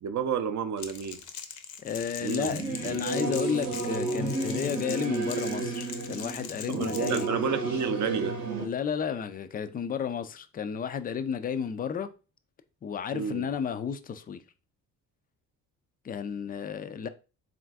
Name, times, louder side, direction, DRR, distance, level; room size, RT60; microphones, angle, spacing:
voice 1, 0.0-1.2 2.2-2.5 2.9-3.0 6.7-8.4 13.1-13.5, right 7 dB, 40° right, 0.6 m, -30 dB
Crackle, 0.8-7.3, left 8 dB, 55° left, 0.7 m, -41 dB
voice 2, 1.8-7.4 8.6-12.1 12.8-14.4 16.0-17.1, left 7 dB, 20° left, 0.3 m, -32 dB
Singing / Musical instrument, 2.4-8.7, right 3 dB, 90° right, 0.9 m, -32 dB
3.8 x 2.4 x 3.4 m
hypercardioid pair, 45°, 46 cm